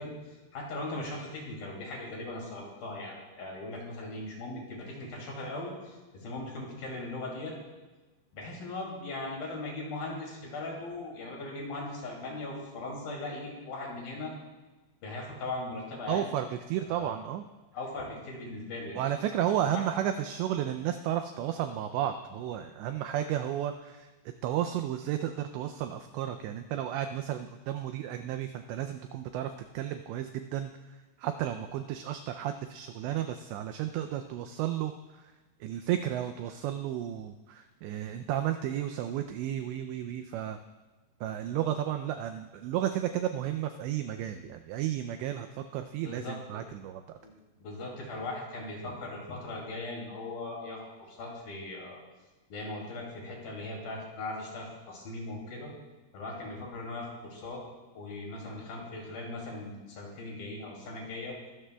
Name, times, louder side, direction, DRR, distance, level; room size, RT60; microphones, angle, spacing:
voice 1, 0.0-7.5 8.3-14.3 15.0-16.3 16.8-17.1 17.7-19.0 19.6-19.8 46.0-46.6 47.2-47.3 47.6-52.0 52.5-55.7 56.1-57.6 58.0-61.4, left 2 dB, 55° left, -2 dB, 4.0 m, -39 dB
voice 2, 16.1-17.4 19.0-24.1 24.4-30.7 31.2-34.9 35.6-40.6 41.2-47.2, right 11 dB, 85° right, 8 dB, 2.5 m, -33 dB
23.0 x 13.0 x 2.3 m, 1.2 s
omnidirectional pair, 5.7 m